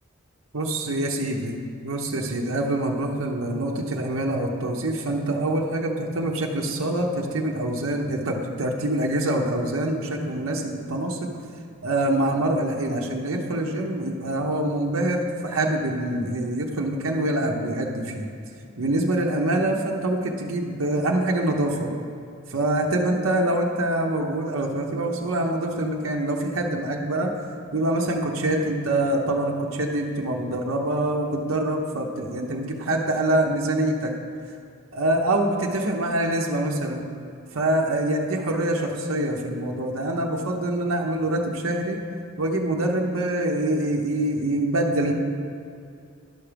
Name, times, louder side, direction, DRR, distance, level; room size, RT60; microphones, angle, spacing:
voice 1, 0.5-1.5 1.8-11.3 11.8-18.3 18.8-21.9 22.5-27.3 27.7-34.1 34.9-37.0 37.5-42.0 42.4-45.1, right 1 dB, 70° right, 0 dB, 0.9 m, -25 dB
10.5 x 6.0 x 5.1 m, 2.4 s
head